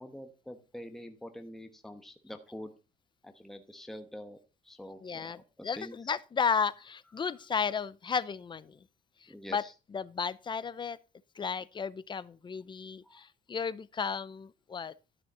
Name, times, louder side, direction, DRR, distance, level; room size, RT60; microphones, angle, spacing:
voice 1, 0.0-2.7 3.2-4.4 4.6-6.1 7.1-7.4 9.3-9.7 13.0-13.2, equal, ahead, 1.1 m, -46 dB
voice 2, 5.0-8.8 9.2-9.6 9.9-11.0 11.3-14.9, left 6 dB, 30° left, 0.6 m, -34 dB
12.5 x 6.4 x 4.2 m
cardioid pair, 110°, 17 cm